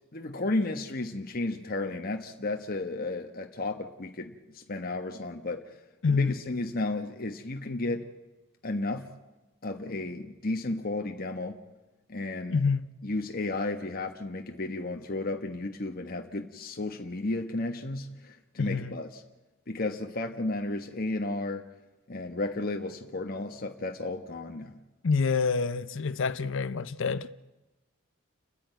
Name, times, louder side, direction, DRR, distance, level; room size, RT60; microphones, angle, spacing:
voice 1, 0.1-5.7 6.1-8.1 8.6-9.1 9.6-11.6 12.1-12.6 13.0-19.2 19.7-21.7 22.1-24.8, left 2 dB, 45° left, 1.2 m, -33 dB
voice 2, 6.0-6.3 12.5-12.9 18.6-18.9 25.0-27.3, left 5 dB, 65° left, 0.6 m, -27 dB
30.0 x 10.0 x 9.2 m
head